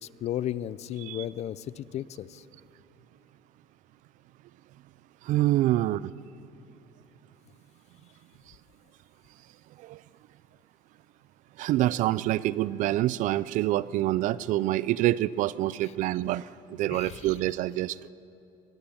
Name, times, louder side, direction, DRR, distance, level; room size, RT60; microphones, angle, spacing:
voice 1, 0.0-2.4 16.9-17.3, left 11 dB, 50° left, 17 dB, 0.7 m, -34 dB
voice 2, 5.2-6.1 9.8-10.0 11.6-18.1, right 15 dB, 60° right, 20 dB, 0.5 m, -26 dB
23.0 x 20.5 x 7.2 m, 2.8 s
cardioid pair, 120°, 15 cm